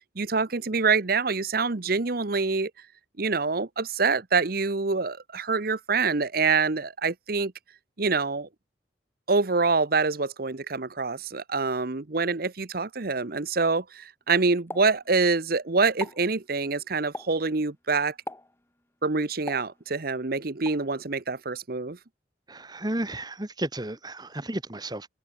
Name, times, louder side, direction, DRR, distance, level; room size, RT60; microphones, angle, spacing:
voice 1, 0.1-2.7 3.2-7.5 8.0-8.5 9.3-18.1 19.0-22.0, right 4 dB, 55° right, 1.0 m, -26 dB
Explosion, 14.7-15.6 15.9-16.3 17.1-17.5 18.3-18.6 19.5-20.2 20.7-20.9, left 2 dB, 15° left, 1.4 m, -39 dB
voice 2, 22.5-25.1, right 1 dB, 20° right, 1.7 m, -33 dB
head